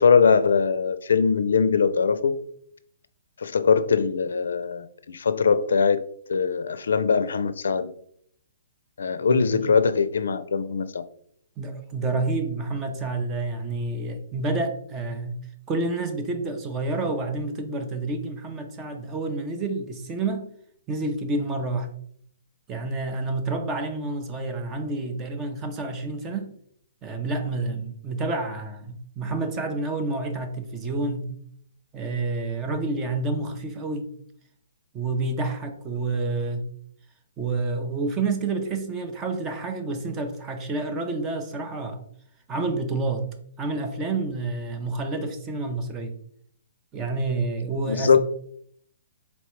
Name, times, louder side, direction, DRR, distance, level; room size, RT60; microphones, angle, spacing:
voice 1, 0.0-2.4 3.4-6.0 6.3-7.9 9.0-11.0 47.9-48.2, left 5 dB, 80° left, 12 dB, 0.4 m, -21 dB
voice 2, 9.3-9.7 11.6-15.4 15.7-20.5 20.9-21.9 22.7-26.5 27.0-31.2 31.9-34.1 34.9-36.6 37.4-42.0 42.5-43.3 43.6-46.2 46.9-48.2, right 3 dB, 15° right, 6 dB, 0.4 m, -29 dB
4.1 x 3.2 x 3.0 m, 0.64 s
hypercardioid pair, 170°, 0 cm